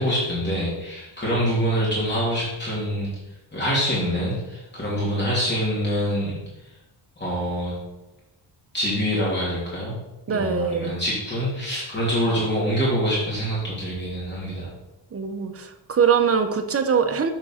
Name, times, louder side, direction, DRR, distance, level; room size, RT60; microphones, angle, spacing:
voice 1, 0.0-3.1 3.5-6.3 7.2-7.8 8.7-9.9 10.3-14.7, equal, 25° left, -7 dB, 3.1 m, -25 dB
voice 2, 10.3-10.9 15.1-17.3, right 6 dB, 30° right, 6 dB, 0.9 m, -22 dB
7.6 x 4.9 x 5.7 m, 0.96 s
cardioid pair, 110°, 45 cm